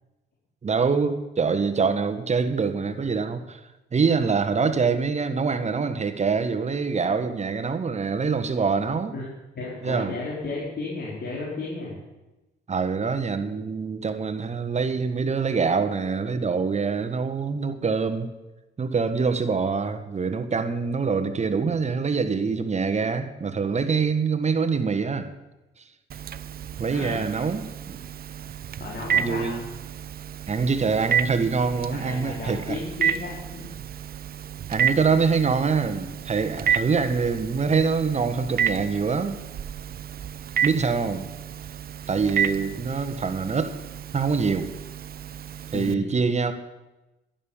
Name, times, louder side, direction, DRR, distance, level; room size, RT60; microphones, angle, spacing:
voice 1, 0.6-3.6 3.9-9.1 9.8-10.1 12.7-18.3 18.8-25.3 26.8-28.0 29.1-29.6 30.5-32.8 34.7-39.4 40.6-41.2 42.1-43.7 44.1-44.7 45.7-46.5, right 5 dB, 35° right, 8 dB, 1.4 m, -25 dB
voice 2, 9.5-12.0 26.9-27.4 28.8-29.6 32.0-33.6 45.7-46.1, left 3 dB, 55° left, -5 dB, 4.3 m, -33 dB
Telephone, 26.1-45.9, right 8 dB, 50° right, 0.7 m, -31 dB
11.5 x 11.0 x 7.2 m, 1.0 s
cardioid pair, 90°, 20 cm